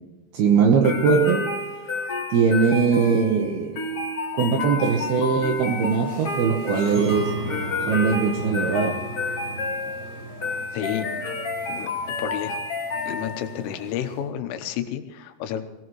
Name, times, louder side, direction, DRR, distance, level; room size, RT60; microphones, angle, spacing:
voice 1, 0.3-1.4 2.3-3.8 4.3-7.3 7.9-9.0, right 5 dB, 75° right, 3 dB, 2.4 m, -21 dB
sound 1, 0.8-13.6, left 3 dB, 50° left, 1.9 m, -30 dB
sound 2, 4.8-14.2, right 1 dB, 45° right, 6.4 m, -38 dB
voice 2, 10.7-11.1 11.7-11.9 12.2-12.6 13.1-15.6, left 10 dB, 85° left, 7 dB, 3.6 m, -30 dB
22.5 x 17.5 x 3.1 m, 1.1 s
omnidirectional pair, 5.7 m